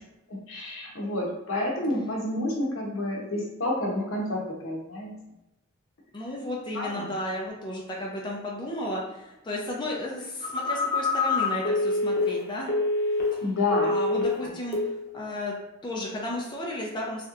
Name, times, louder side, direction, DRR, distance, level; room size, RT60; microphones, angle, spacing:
voice 1, 0.5-5.1 6.7-7.1 13.4-13.9, left 2 dB, 80° left, -2 dB, 0.8 m, -29 dB
voice 2, 6.1-12.7 13.8-14.8 15.1-15.5 15.8-17.3, left 1 dB, 25° left, -2 dB, 0.5 m, -33 dB
Telephone, 10.4-13.5 13.7-14.4 14.7-15.0, left 3 dB, 50° left, 0.8 m, -26 dB
3.2 x 2.9 x 2.4 m, 0.95 s
head